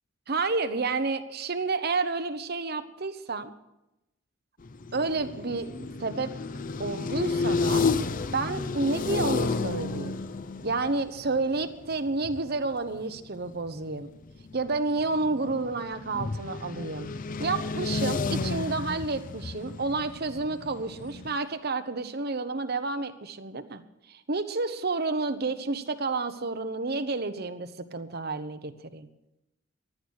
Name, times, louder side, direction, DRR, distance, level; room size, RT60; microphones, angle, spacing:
voice 1, 0.3-3.5 4.9-6.3 6.8-7.8 8.3-10.2 10.6-14.1 14.5-17.1 17.4-23.8 24.1-29.1, right 3 dB, 50° right, 10 dB, 1.0 m, -30 dB
sound 1, 4.6-12.7 13.0-13.2 13.5-21.4, left 4 dB, 45° left, 0.5 m, -32 dB
15.0 x 11.5 x 6.5 m, 0.91 s
head